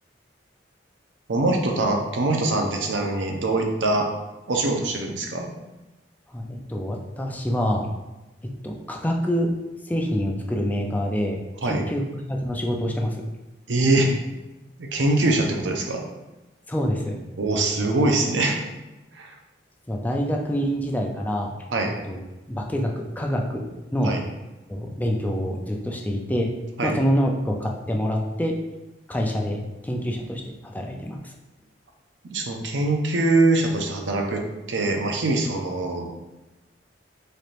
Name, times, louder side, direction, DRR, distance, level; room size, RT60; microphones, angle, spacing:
voice 1, 1.3-4.1 4.5-5.5 11.6-11.9 13.7-14.1 14.8-16.0 17.4-18.6 19.1-19.3 21.7-22.0 24.0-24.2 26.8-27.0 32.2-34.4 34.7-36.1, right 2 dB, 80° right, 2 dB, 0.6 m, -23 dB
voice 2, 6.3-7.8 8.6-9.5 9.9-13.2 16.7-17.2 19.9-21.5 22.1-22.2 22.5-23.6 23.9-24.1 24.7-26.5 26.8-28.6 29.1-29.6 29.8-31.3, equal, 10° left, 1 dB, 0.4 m, -26 dB
4.2 x 3.3 x 2.5 m, 1.1 s
head